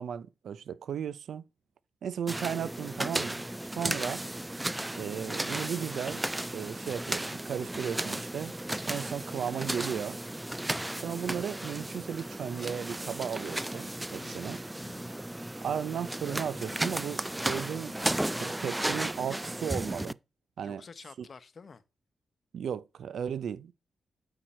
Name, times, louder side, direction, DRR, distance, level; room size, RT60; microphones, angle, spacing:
voice 1, 0.0-1.4 2.0-4.2 5.0-6.2 6.5-8.5 8.8-10.2 11.0-14.6 15.6-18.0 18.4-20.2 20.6-20.8 21.2-21.3 22.5-23.7, right 8 dB, 75° right, 0.5 m, -35 dB
sound 1, 2.3-20.1, right 1 dB, 15° right, 0.3 m, -35 dB
voice 2, 14.2-15.1 20.6-21.8, left 5 dB, 55° left, 0.8 m, -50 dB
8.6 x 4.7 x 4.5 m
supercardioid pair, 50°, 0 cm